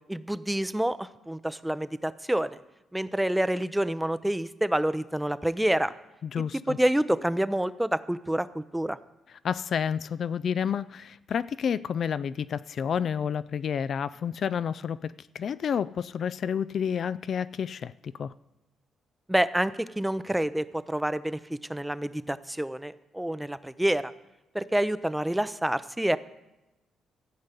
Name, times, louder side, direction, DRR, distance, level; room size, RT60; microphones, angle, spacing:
voice 1, 0.1-2.6 2.9-5.9 6.7-9.0 19.3-24.1 24.5-26.2, right 1 dB, 5° right, 15 dB, 0.5 m, -28 dB
voice 2, 6.2-6.8 9.3-17.9 18.2-18.3, left 7 dB, 55° left, 17 dB, 0.3 m, -30 dB
14.0 x 5.4 x 8.2 m, 0.98 s
cardioid pair, 90°, 0 cm